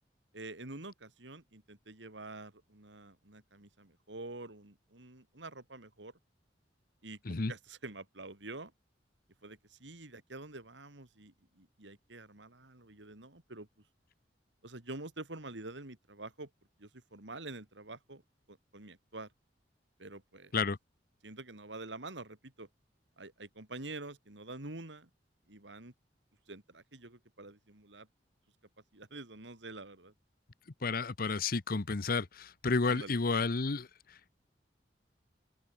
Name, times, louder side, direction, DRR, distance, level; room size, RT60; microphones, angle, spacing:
voice 1, 0.3-6.1 7.0-8.7 9.4-13.7 14.6-16.5 16.8-18.2 18.5-19.3 20.0-20.5 21.2-22.7 23.2-25.1 25.5-25.9 26.5-28.1 28.9-30.1 32.8-33.2, right 2 dB, 85° right, 3.2 m, -47 dB
voice 2, 30.8-34.3, left 4 dB, 55° left, 0.9 m, -31 dB
open air
head